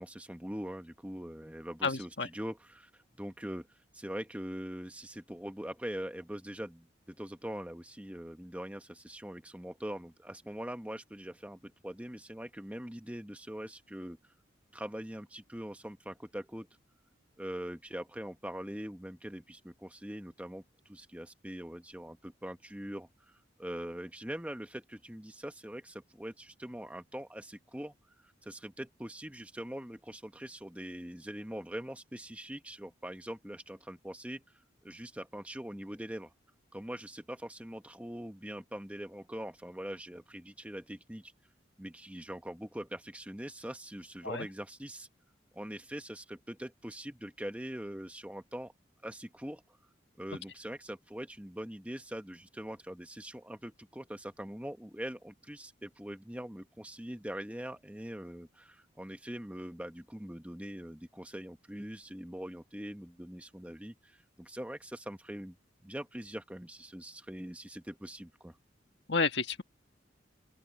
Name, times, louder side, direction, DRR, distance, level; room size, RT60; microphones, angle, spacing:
voice 1, 0.0-14.3 14.7-16.7 17.4-27.9 28.2-34.4 34.8-36.3 36.7-41.3 41.8-45.1 45.5-48.7 49.0-49.6 50.2-65.6 65.8-68.6, equal, 5° right, 1.0 m, -42 dB
voice 2, 1.8-2.3 44.2-44.5 69.1-69.6, left 4 dB, 65° left, 1.5 m, -31 dB
open air
head